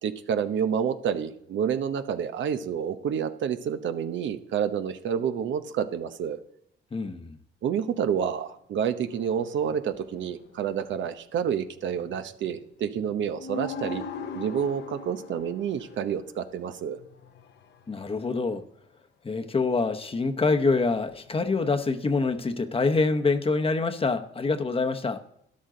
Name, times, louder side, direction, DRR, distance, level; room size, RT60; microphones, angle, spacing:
voice 1, 0.0-6.4 7.6-14.0 14.3-17.0, right 8 dB, 70° right, 0.9 m, -29 dB
voice 2, 6.9-7.4 17.9-18.6 19.2-25.2, left 3 dB, 30° left, 1.0 m, -25 dB
sound 1, 9.0-10.6 13.1-13.2 13.3-17.8 21.0-21.5 22.3-22.5, left 4 dB, 60° left, 0.9 m, -40 dB
13.0 x 11.5 x 3.8 m
cardioid pair, 90°, 20 cm